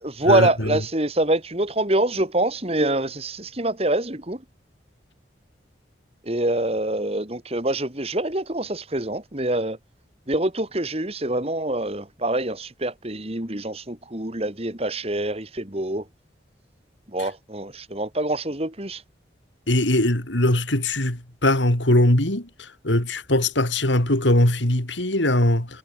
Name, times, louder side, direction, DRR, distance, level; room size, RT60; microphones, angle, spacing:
voice 1, 0.0-4.4 6.2-9.8 10.3-16.0 17.1-19.0, right 1 dB, 35° right, 2.5 m, -25 dB
voice 2, 19.7-22.4 22.8-25.7, left 1 dB, 80° left, 4.0 m, -20 dB
head